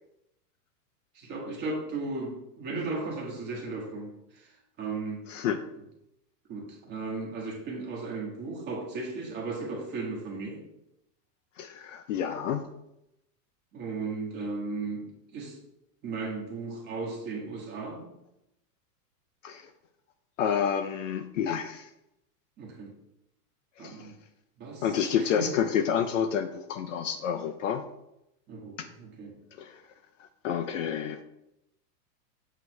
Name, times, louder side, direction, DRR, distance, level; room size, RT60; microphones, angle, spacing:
voice 1, 1.1-5.2 6.5-10.6 13.7-15.1 15.3-15.6 16.0-18.1 22.6-22.9 23.8-24.1 24.6-24.9 25.2-25.5 28.5-29.4, right 3 dB, 20° right, -1 dB, 1.2 m, -36 dB
voice 2, 5.3-5.6 11.6-12.6 19.4-19.7 20.4-21.9 23.8-24.1 24.8-27.8 29.6-29.8 30.2-31.2, left 8 dB, 50° left, 8 dB, 0.5 m, -29 dB
7.0 x 3.3 x 6.2 m, 0.85 s
supercardioid pair, 175°, 49 cm